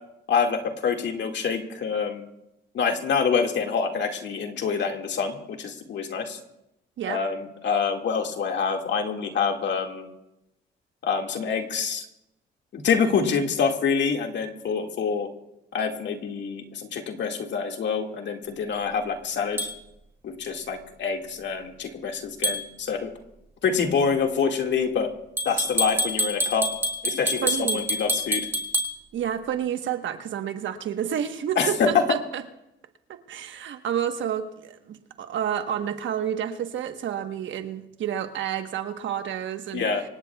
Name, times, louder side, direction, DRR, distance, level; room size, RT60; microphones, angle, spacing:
voice 1, 0.3-2.3 2.7-6.4 7.0-10.1 11.0-12.0 12.7-15.3 15.7-19.6 20.2-23.1 23.6-25.1 25.5-26.7 27.0-28.5 31.6-32.2 39.7-40.0, left 6 dB, 65° left, 3 dB, 2.1 m, -26 dB
sound 1, 19.6-19.7 22.4-22.6 25.4-28.9, equal, 10° right, 2.7 m, -26 dB
voice 2, 27.4-27.9 29.1-32.4 33.1-39.9, right 9 dB, 75° right, 7 dB, 1.3 m, -30 dB
25.5 x 17.0 x 2.4 m, 0.86 s
cardioid pair, 90°, 20 cm